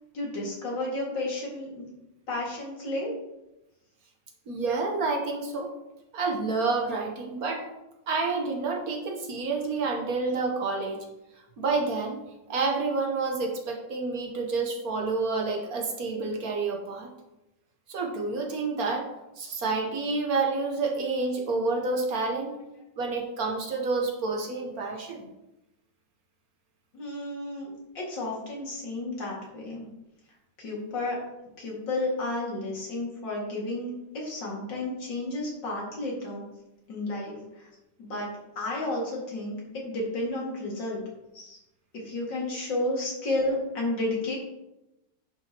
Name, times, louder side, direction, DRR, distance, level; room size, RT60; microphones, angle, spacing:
voice 1, 0.1-1.9 2.3-3.1 26.9-29.8 30.6-31.2 31.6-36.4 36.9-37.7 38.0-41.0 41.3-41.6 42.0-44.4, left 2 dB, 80° left, -4 dB, 2.9 m, -32 dB
voice 2, 4.5-5.7 6.1-7.6 8.1-11.0 11.6-12.2 12.5-17.1 17.9-19.1 19.4-22.6 23.0-25.2, right 3 dB, 55° right, 1 dB, 1.5 m, -29 dB
10.0 x 5.6 x 3.0 m, 0.94 s
omnidirectional pair, 1.9 m